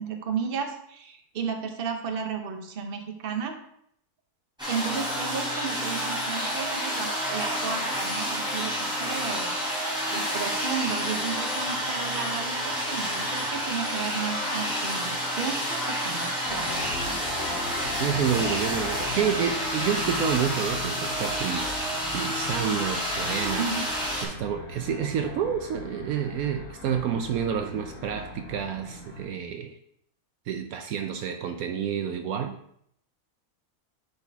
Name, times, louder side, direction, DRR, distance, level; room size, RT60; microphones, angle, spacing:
voice 1, 0.0-3.5 4.7-9.5 10.1-16.7 17.1-17.2 23.6-23.8, right 6 dB, 45° right, 4 dB, 0.9 m, -33 dB
sound 1, 4.6-24.2, equal, 5° right, 3.0 m, -29 dB
sound 2, 16.4-29.3, left 2 dB, 60° left, 1.9 m, -40 dB
voice 2, 17.8-21.8 22.1-23.6 24.2-29.8 30.5-32.6, right 8 dB, 75° right, 6 dB, 1.0 m, -29 dB
9.7 x 4.1 x 3.5 m, 0.70 s
omnidirectional pair, 1.6 m